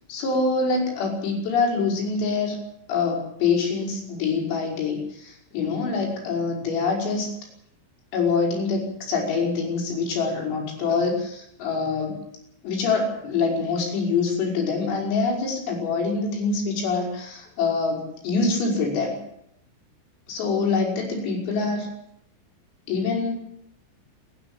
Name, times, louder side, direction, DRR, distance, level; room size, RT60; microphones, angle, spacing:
voice 1, 0.1-2.6 2.9-7.3 8.1-12.2 12.6-19.2 20.3-21.9 22.9-23.3, left 4 dB, 85° left, -1 dB, 8.3 m, -25 dB
28.5 x 10.5 x 8.8 m, 0.75 s
omnidirectional pair, 5.9 m